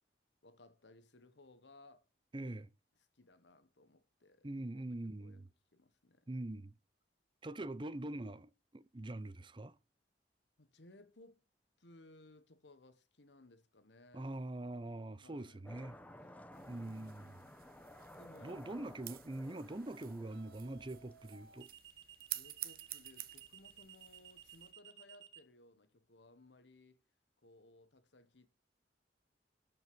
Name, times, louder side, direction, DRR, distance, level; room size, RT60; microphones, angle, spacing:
voice 1, 0.4-2.1 3.1-5.4 5.7-6.3 10.6-11.4 11.8-14.5 15.2-15.7 18.2-18.6 22.3-27.0 27.4-28.5, left 2 dB, 90° left, 1.3 m, -62 dB
voice 2, 2.3-2.7 4.4-5.5 6.3-6.7 7.4-9.8 14.1-16.0 16.7-17.5 18.4-21.7, right 1 dB, 30° right, 0.7 m, -43 dB
sound 1, 15.6-21.6, left 1 dB, 10° left, 1.0 m, -56 dB
sound 2, 16.5-24.7, right 14 dB, 55° right, 0.9 m, -50 dB
sound 3, 17.0-17.4 20.3-25.4, right 10 dB, 80° right, 1.9 m, -57 dB
12.5 x 5.4 x 7.7 m
head